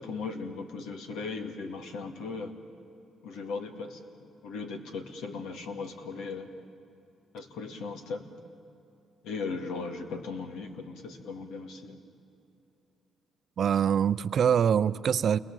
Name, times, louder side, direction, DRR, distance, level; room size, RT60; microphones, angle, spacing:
voice 1, 0.0-2.6 3.2-6.5 7.3-8.2 9.2-12.0, left 4 dB, 85° left, 5 dB, 2.1 m, -37 dB
voice 2, 13.6-15.4, right 8 dB, 60° right, 16 dB, 0.5 m, -24 dB
28.5 x 21.0 x 7.6 m, 2.8 s
cardioid pair, 90°, 0 cm